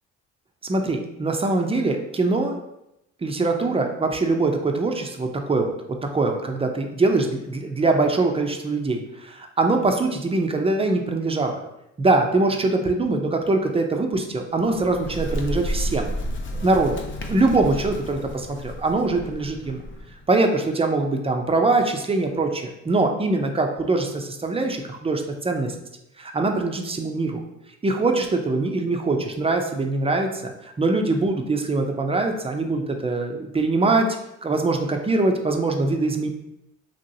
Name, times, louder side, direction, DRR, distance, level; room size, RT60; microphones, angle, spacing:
voice 1, 0.7-2.5 3.2-5.7 6.1-11.6 12.0-16.1 16.5-17.0 17.3-19.8 20.3-25.7 26.2-27.4 27.8-34.1 34.4-36.3, right 3 dB, 20° right, 3 dB, 0.4 m, -23 dB
Bird, 14.5-20.3, equal, 40° left, 0.5 m, -32 dB
2.9 x 2.7 x 2.6 m, 0.84 s
supercardioid pair, 75°, 32 cm